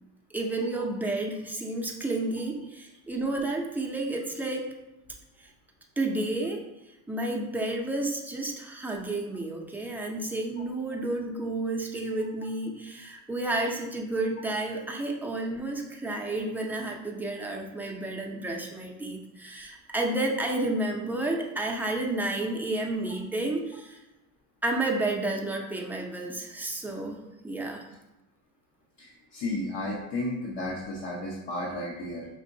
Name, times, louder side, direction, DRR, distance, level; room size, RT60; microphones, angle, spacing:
voice 1, 0.3-4.7 6.0-6.7 7.1-24.0 24.6-27.2 27.4-27.8, right 2 dB, 5° right, -1 dB, 0.5 m, -31 dB
voice 2, 29.0-32.3, left 1 dB, 65° left, -4 dB, 1.2 m, -33 dB
5.3 x 2.9 x 2.7 m, 0.97 s
supercardioid pair, 110°, 46 cm